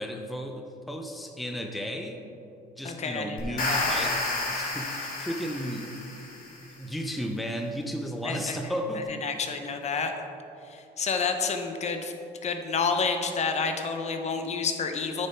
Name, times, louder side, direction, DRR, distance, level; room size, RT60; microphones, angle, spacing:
voice 1, 0.0-2.2 2.8-5.9 6.7-9.1, equal, ahead, 2 dB, 0.6 m, -34 dB
voice 2, 2.8-3.9 8.2-8.6 9.2-10.1 10.7-12.1 12.4-15.3, left 5 dB, 40° left, 6 dB, 0.9 m, -29 dB
sound 1, 3.4-6.6, left 2 dB, 55° left, 2.1 m, -31 dB
9.0 x 6.8 x 4.5 m, 2.8 s
cardioid pair, 110°, 17 cm